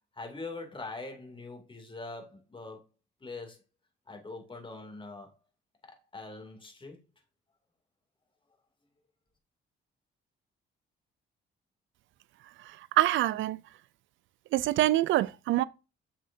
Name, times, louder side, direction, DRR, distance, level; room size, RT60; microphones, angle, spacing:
voice 1, 0.2-2.8 3.2-3.6 4.1-5.3 5.8-7.0, left 3 dB, 25° left, 2.6 m, -43 dB
voice 2, 13.0-13.6 14.5-15.6, right 15 dB, 80° right, 0.4 m, -25 dB
7.7 x 6.5 x 2.7 m
cardioid pair, 90°, 20 cm